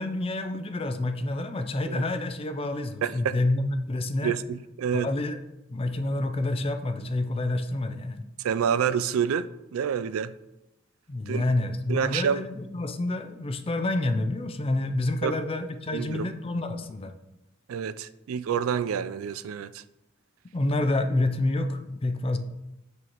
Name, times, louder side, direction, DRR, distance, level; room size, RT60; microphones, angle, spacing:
voice 1, 0.0-4.3 4.9-5.4 5.7-8.3 11.1-17.1 20.5-22.4, left 2 dB, 30° left, 0.4 m, -28 dB
voice 2, 3.0-3.4 4.2-5.1 8.4-10.3 11.3-11.4 11.9-12.4 15.2-15.3 15.9-16.3 17.7-19.8, right 7 dB, 90° right, 0.3 m, -28 dB
6.9 x 6.2 x 3.0 m
head